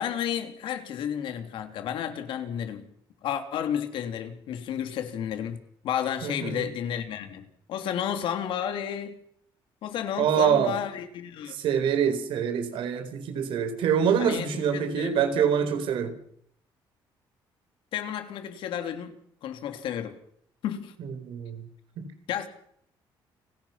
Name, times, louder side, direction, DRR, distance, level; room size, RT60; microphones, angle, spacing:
voice 1, 0.0-2.9 3.2-5.6 5.8-9.2 9.8-11.6 14.2-15.1 17.9-19.1 19.4-20.2 20.6-20.9 22.3-22.5, left 9 dB, 75° left, 3.2 m, -32 dB
voice 2, 6.2-6.7 10.2-10.8 11.5-16.1 21.0-21.6 22.0-22.1, right 8 dB, 80° right, 4.3 m, -25 dB
30.0 x 17.0 x 5.8 m
cardioid pair, 125°, 9 cm